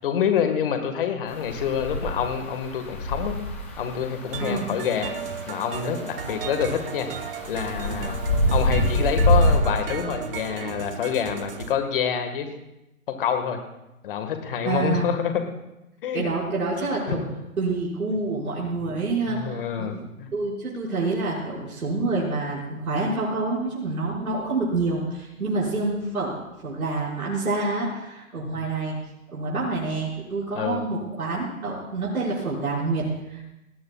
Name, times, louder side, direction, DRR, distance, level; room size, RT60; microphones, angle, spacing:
voice 1, 0.0-3.4 3.8-5.1 5.5-7.1 7.5-8.2 8.5-12.5 13.2-13.6 14.0-15.3 16.0-16.3 17.1-17.3 19.3-20.3 28.4-28.6 30.5-30.8, left 8 dB, 35° left, 6 dB, 1.7 m, -27 dB
sound 1, 1.3-9.6, equal, 10° left, 0.5 m, -26 dB
sound 2, 4.3-11.7, right 7 dB, 40° right, 0.8 m, -35 dB
voice 2, 14.6-15.1 16.1-17.2 17.6-29.0 29.3-33.4, right 3 dB, 80° right, -6 dB, 5.5 m, -27 dB
20.0 x 18.0 x 2.4 m, 0.93 s
hypercardioid pair, 155°, 44 cm